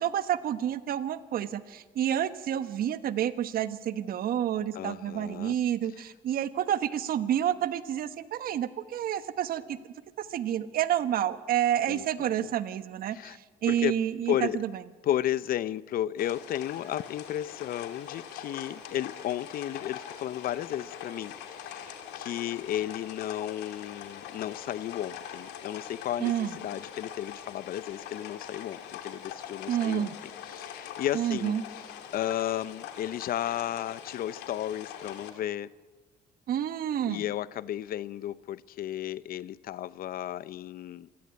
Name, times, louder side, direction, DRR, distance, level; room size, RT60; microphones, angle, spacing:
voice 1, 0.0-9.8 10.2-14.7 26.2-26.5 29.7-30.1 31.1-31.6 36.5-37.2, right 10 dB, 60° right, 1.3 m, -29 dB
voice 2, 4.7-5.6 11.9-12.5 13.1-13.4 13.7-13.9 14.3-14.6 15.0-30.1 30.4-31.6 32.1-35.7 37.0-41.1, left 12 dB, 60° left, 0.7 m, -33 dB
sound 1, 16.2-35.3, left 9 dB, 85° left, 2.9 m, -43 dB
26.5 x 17.5 x 9.5 m
cardioid pair, 110°, 17 cm